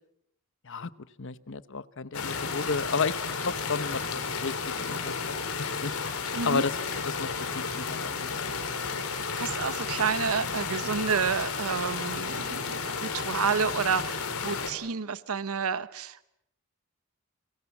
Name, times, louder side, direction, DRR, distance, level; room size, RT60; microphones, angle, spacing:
voice 1, 1.2-8.4, left 4 dB, 60° left, 15 dB, 1.0 m, -33 dB
sound 1, 2.1-14.7, left 5 dB, 85° left, 4.2 m, -32 dB
voice 2, 6.3-6.6 9.1-16.3, right 6 dB, 85° right, 15 dB, 0.9 m, -30 dB
29.5 x 24.5 x 7.3 m, 0.77 s
head